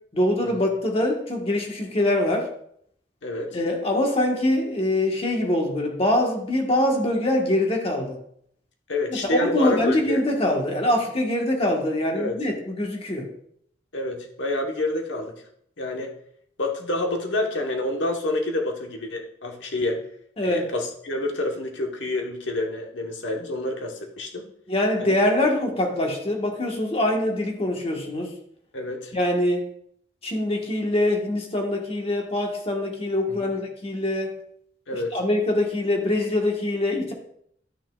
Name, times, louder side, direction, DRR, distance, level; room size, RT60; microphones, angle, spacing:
voice 1, 0.1-2.5 3.5-8.2 9.1-13.3 20.4-20.7 24.7-28.3 29.1-29.7 30.2-34.3 34.9-37.1, left 1 dB, 35° left, 2 dB, 1.4 m, -24 dB
voice 2, 3.2-3.6 8.9-10.2 12.1-12.4 13.9-15.3 15.8-16.1 16.6-20.0 20.4-24.4 25.0-25.5 28.7-29.1 33.3-33.6 34.9-35.1, left 2 dB, 90° left, 2 dB, 1.2 m, -28 dB
11.5 x 6.4 x 2.4 m, 0.67 s
head